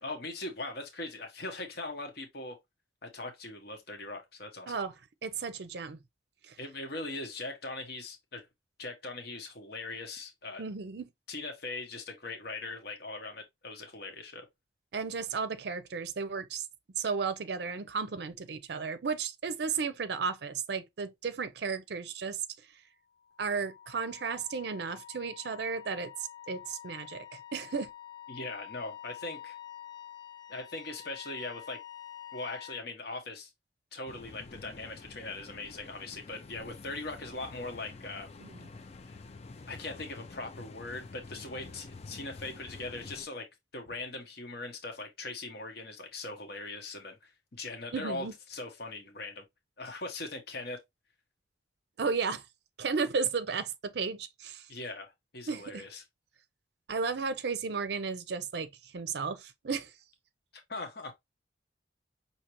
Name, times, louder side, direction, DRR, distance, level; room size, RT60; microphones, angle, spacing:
voice 1, 0.0-2.6 3.0-4.8 6.6-8.5 8.8-10.6 11.3-14.5 28.3-29.6 30.5-31.8 32.3-33.5 33.9-38.3 39.1-39.2 39.7-43.5 43.7-49.4 49.8-50.8 54.7-56.0 60.7-61.1, left 2 dB, 60° left, 1.1 m, -40 dB
voice 2, 5.2-6.0 6.4-6.6 10.6-11.1 14.9-16.7 17.0-22.4 23.4-26.1 26.5-27.9 38.4-38.6 47.9-48.3 52.0-52.4 52.8-54.7 55.5-55.9 56.9-59.9, right 5 dB, 65° right, 0.5 m, -34 dB
Wind instrument woodwind instrument, 23.4-32.9, left 10 dB, 85° left, 1.0 m, -48 dB
sound 1, 34.1-43.3, left 3 dB, 35° left, 0.4 m, -48 dB
5.7 x 2.8 x 2.9 m
head